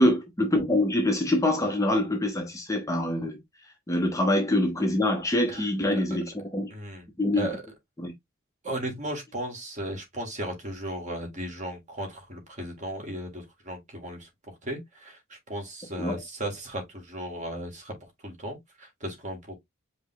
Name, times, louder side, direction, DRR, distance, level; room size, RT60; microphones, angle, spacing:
voice 1, 0.0-3.4 3.9-6.7 7.2-7.5 8.0-8.1 16.0-16.2, left 1 dB, 15° left, 0.8 m, -25 dB
voice 2, 5.5-6.0 6.7-7.1 7.3-7.6 8.6-18.0 18.2-19.6, right 1 dB, 35° right, 1.9 m, -36 dB
5.2 x 2.2 x 3.8 m
head